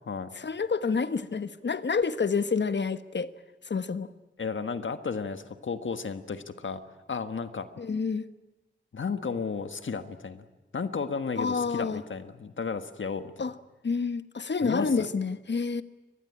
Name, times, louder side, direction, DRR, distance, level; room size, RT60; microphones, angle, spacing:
voice 1, 0.3-3.3 3.6-4.1 7.8-8.3 11.4-12.0 13.4-13.5 13.8-15.8, left 5 dB, 65° left, 12 dB, 1.2 m, -28 dB
voice 2, 4.4-6.8 7.1-7.7 8.9-10.4 10.7-13.3 14.6-15.1, left 5 dB, 85° left, 10 dB, 1.5 m, -33 dB
24.0 x 20.5 x 9.9 m, 1.1 s
wide cardioid pair, 85°, 19 cm